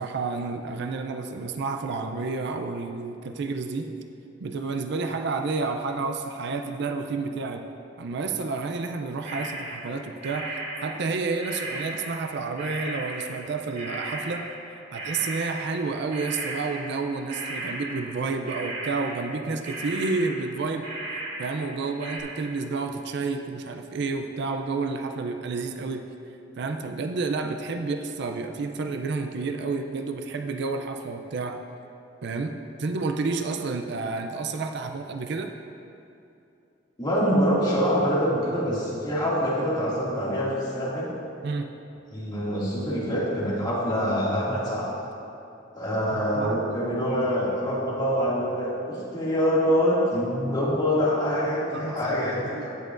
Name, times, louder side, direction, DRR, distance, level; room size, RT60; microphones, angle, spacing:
voice 1, 0.0-3.9 4.4-7.7 8.0-10.5 10.8-14.5 14.9-20.9 21.4-26.1 26.6-31.6 32.2-35.5 41.4-41.7 46.1-46.6 51.7-52.7, right 4 dB, 60° right, 6 dB, 0.4 m, -30 dB
sound 1, 9.2-10.0 10.2-12.3 12.6-21.7 22.0-22.2, right 2 dB, 45° right, 1.7 m, -36 dB
voice 2, 37.0-41.1 42.1-44.9 45.7-52.7, equal, 25° left, -7 dB, 2.2 m, -25 dB
16.0 x 6.7 x 2.5 m, 2.7 s
head